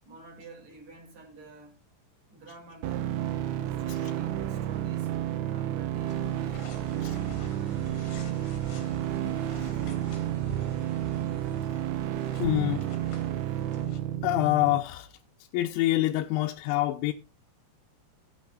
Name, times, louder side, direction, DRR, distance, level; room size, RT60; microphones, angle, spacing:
voice 1, 0.0-1.8 2.3-3.1 3.5-5.1 5.5-6.7 9.7-9.9, right 3 dB, 45° right, 3.2 m, -48 dB
sound 1, 2.8-14.8, right 12 dB, 90° right, 3.3 m, -31 dB
sound 2, 6.1-14.0, left 6 dB, 60° left, 3.2 m, -48 dB
sound 3, 6.7-11.7, right 6 dB, 65° right, 4.0 m, -43 dB
voice 2, 12.4-12.9 14.2-15.1 15.5-17.1, left 16 dB, 85° left, 3.0 m, -26 dB
18.0 x 8.9 x 2.4 m
omnidirectional pair, 5.3 m